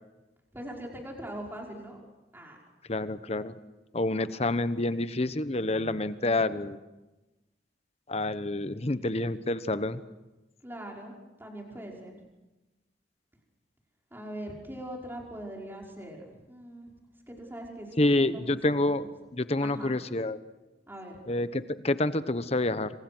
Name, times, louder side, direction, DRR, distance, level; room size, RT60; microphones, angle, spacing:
voice 1, 0.5-2.0 2.3-2.6 10.6-11.1 11.4-12.2 14.1-16.9 17.3-18.9 19.6-20.0 20.9-21.1, right 1 dB, 10° right, -1 dB, 5.5 m, -41 dB
voice 2, 2.9-3.5 3.9-6.8 8.1-10.0 18.0-19.1 19.3-20.4 21.3-22.9, left 2 dB, 35° left, 13 dB, 1.1 m, -28 dB
28.0 x 26.5 x 6.2 m, 1.1 s
head